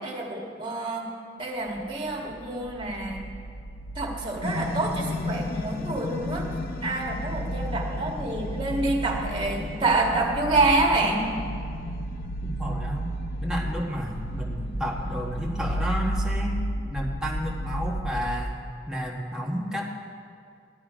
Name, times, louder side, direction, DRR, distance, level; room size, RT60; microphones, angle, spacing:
voice 1, 0.0-1.1 1.4-3.2 4.0-6.5 6.8-11.3, right 2 dB, 25° right, -1 dB, 2.0 m, -27 dB
sound 1, 1.7-18.4, right 1 dB, 75° left, 1.1 m, -34 dB
sound 2, 4.4-15.8, left 3 dB, 55° left, 0.7 m, -36 dB
voice 2, 12.4-13.1 13.4-16.6 16.9-18.6 18.9-20.0, equal, 5° right, -2 dB, 1.5 m, -31 dB
16.5 x 12.0 x 5.0 m, 2.3 s
head